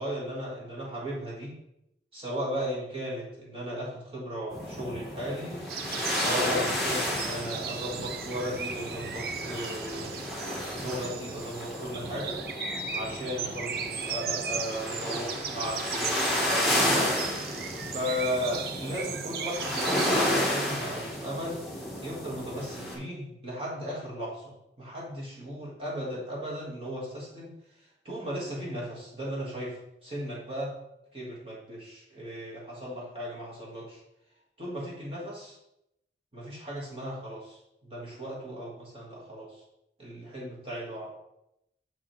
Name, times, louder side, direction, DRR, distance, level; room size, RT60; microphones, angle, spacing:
voice 1, 0.0-1.5 2.1-5.7 6.1-12.4 12.9-17.1 17.9-21.6 22.0-27.5 28.0-30.8 31.1-34.0 34.6-35.6 36.3-39.6 40.0-41.1, equal, 30° right, -5 dB, 1.7 m, -36 dB
sound 1, 4.5-23.0, left 1 dB, ahead, 1.3 m, -32 dB
sound 2, 5.7-20.4, right 7 dB, 55° right, 0.4 m, -37 dB
sound 3, 12.5-13.9, left 7 dB, 30° left, 0.9 m, -42 dB
6.2 x 4.9 x 4.6 m, 0.81 s
head